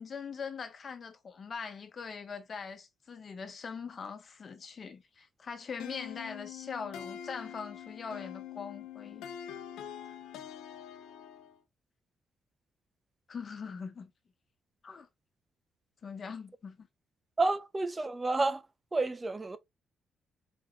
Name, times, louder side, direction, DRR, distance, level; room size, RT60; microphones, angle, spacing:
voice 1, 0.0-9.2 13.3-14.1 14.8-15.1 16.0-16.9, left 5 dB, 50° left, 1.2 m, -42 dB
sound 1, 5.8-11.6, left 9 dB, 85° left, 0.7 m, -45 dB
voice 2, 17.4-18.6 18.9-19.6, right 3 dB, 25° right, 0.6 m, -30 dB
4.5 x 3.6 x 2.4 m
supercardioid pair, 70°, 0 cm